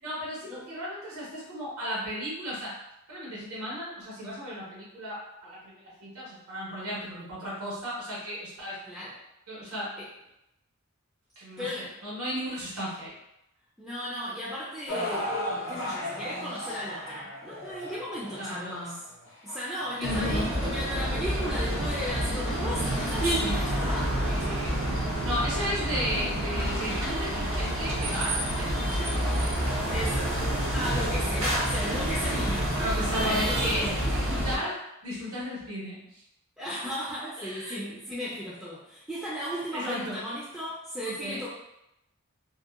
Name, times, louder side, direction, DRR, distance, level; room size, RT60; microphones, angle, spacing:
voice 1, 0.0-2.7 3.1-8.8 9.5-9.9 11.4-13.1 18.4-18.9 19.9-20.5 24.2-24.8 25.2-29.8 32.7-34.8 35.0-36.2 37.4-37.8 39.7-40.2 41.0-41.4, equal, 85° right, -8 dB, 1.3 m, -35 dB
voice 2, 11.6-11.9 13.8-15.3 15.7-19.0 19.4-24.2 25.8-25.9 29.9-32.8 33.1-34.3 36.6-41.5, equal, 5° right, -9 dB, 0.3 m, -35 dB
sound 1, 14.9-21.1 21.8-21.9 22.6-22.7, left 1 dB, 55° left, 0.7 m, -36 dB
sound 2, 20.0-34.6, right 1 dB, 55° right, 0.6 m, -28 dB
2.7 x 2.1 x 2.4 m, 0.85 s
head